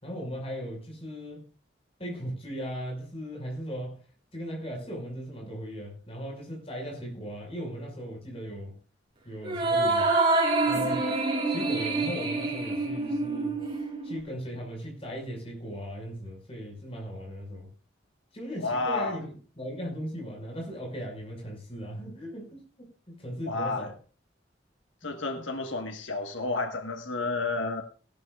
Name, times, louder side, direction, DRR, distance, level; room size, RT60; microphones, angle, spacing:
voice 1, 0.0-1.5 2.0-4.0 4.3-8.7 9.2-10.1 10.6-11.1 11.5-13.6 14.0-17.7 18.3-22.6 23.1-23.9 25.0-25.4, equal, 30° left, 5.8 m, -38 dB
sound 1, 9.4-14.2, right 3 dB, 25° right, 4.8 m, -26 dB
voice 2, 18.6-19.2 23.4-23.9 25.0-27.8, left 3 dB, 90° left, 1.6 m, -31 dB
18.0 x 12.5 x 2.5 m
head